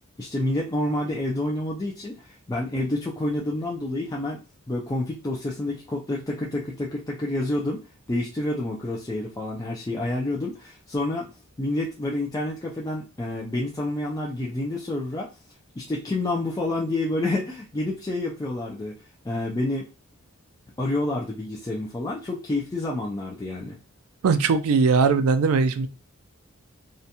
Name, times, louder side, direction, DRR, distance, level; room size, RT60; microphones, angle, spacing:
voice 1, 0.2-4.4 4.7-11.3 11.6-15.3 15.8-19.0 19.2-19.9 20.8-23.8, left 1 dB, 15° left, -2 dB, 0.3 m, -28 dB
voice 2, 24.2-25.9, right 5 dB, 75° right, 11 dB, 0.4 m, -20 dB
2.5 x 2.2 x 2.7 m, 0.29 s
head